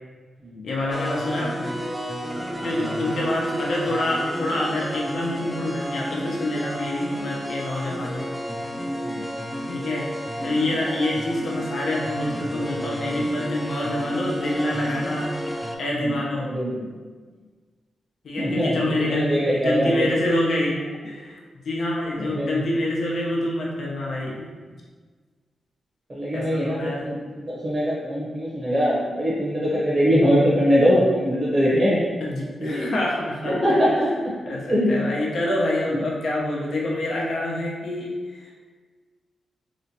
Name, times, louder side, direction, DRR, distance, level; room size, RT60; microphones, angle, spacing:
voice 1, 0.6-1.8 2.6-8.3 9.7-10.1 10.4-15.3 15.8-16.5 18.2-20.8 21.0-21.4 21.6-24.4 26.3-27.0 32.2-33.8 34.5-38.7, left 1 dB, 70° left, -3 dB, 0.7 m, -26 dB
sound 1, 0.9-15.8, equal, 10° right, 0.5 m, -31 dB
voice 2, 2.5-3.1 9.0-9.2 16.0-16.9 18.4-20.1 22.2-22.6 26.1-32.0 32.6-32.9 33.4-34.1 34.7-35.0, equal, 35° right, -8 dB, 0.9 m, -22 dB
3.2 x 3.0 x 2.8 m, 1.5 s
cardioid pair, 65°, 0 cm